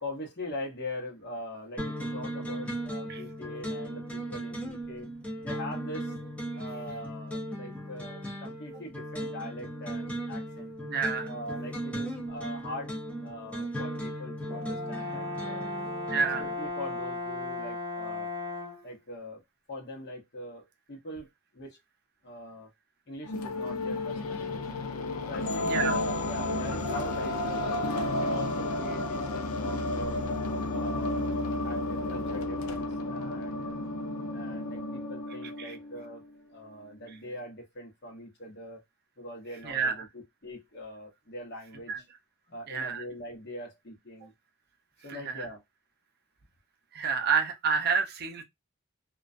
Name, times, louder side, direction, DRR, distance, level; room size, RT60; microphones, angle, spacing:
voice 1, 0.0-5.1 5.4-6.1 6.5-10.7 11.3-12.9 13.2-15.7 16.4-18.3 18.8-19.4 19.7-21.3 21.5-21.8 22.2-22.7 23.1-24.7 25.3-27.8 28.2-30.2 30.7-33.8 34.3-38.8 39.2-42.0 42.5-44.3 45.0-45.6, left 1 dB, 50° left, 0.8 m, -42 dB
sound 1, 1.8-16.5, equal, 5° left, 0.6 m, -37 dB
voice 2, 10.8-11.3 16.1-16.4 25.6-26.0 35.6-35.8 39.6-40.1 41.9-42.0 42.7-43.0 45.1-45.5 46.9-48.4, right 5 dB, 50° right, 0.5 m, -29 dB
Brass instrument, 14.5-18.9, left 2 dB, 15° right, 0.9 m, -36 dB
sound 2, 23.2-36.2, left 2 dB, 85° left, 0.5 m, -32 dB
2.3 x 2.1 x 2.4 m
head